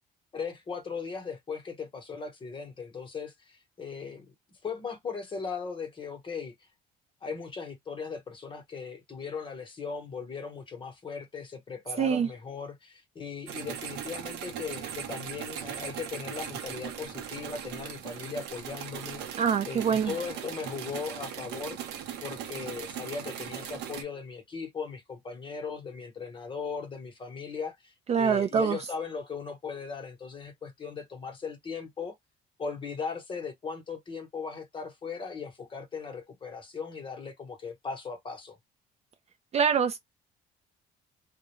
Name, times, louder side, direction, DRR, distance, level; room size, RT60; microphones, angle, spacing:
voice 1, 0.3-4.3 4.6-6.5 7.2-21.8 22.2-32.1 32.6-38.6, left 5 dB, 30° left, 0.9 m, -38 dB
voice 2, 12.0-12.3 19.4-20.1 28.1-28.8 39.5-40.0, right 7 dB, 40° right, 0.4 m, -24 dB
sound 1, 13.5-24.0, right 9 dB, 90° right, 0.7 m, -39 dB
2.3 x 2.1 x 3.0 m
cardioid pair, 110°, 17 cm